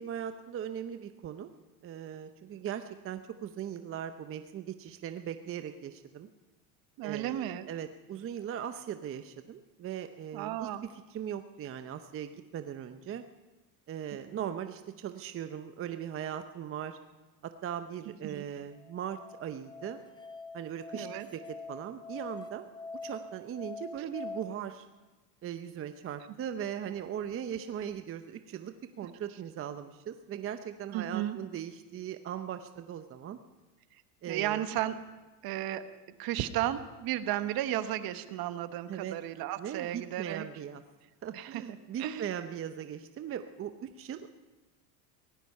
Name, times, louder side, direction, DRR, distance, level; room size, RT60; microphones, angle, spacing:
voice 1, 0.0-1.5 1.8-6.3 7.0-13.2 13.9-17.0 17.4-20.0 20.5-21.1 21.3-21.4 21.7-22.7 23.0-24.9 25.4-33.4 34.2-34.7 38.9-39.2 39.6-40.8 41.2-44.3, right 9 dB, 30° right, 9 dB, 0.7 m, -39 dB
voice 2, 7.0-7.7 10.3-10.9 14.3-14.5 18.2-18.4 20.9-21.3 30.9-31.4 34.3-35.0 35.4-35.8 36.2-40.4 41.3-41.6 42.0-42.3, right 13 dB, 50° right, 11 dB, 1.1 m, -34 dB
Musical instrument, 18.7-24.4, left 3 dB, 10° left, 0.6 m, -44 dB
18.0 x 14.0 x 5.6 m, 1.1 s
supercardioid pair, 105°, 46 cm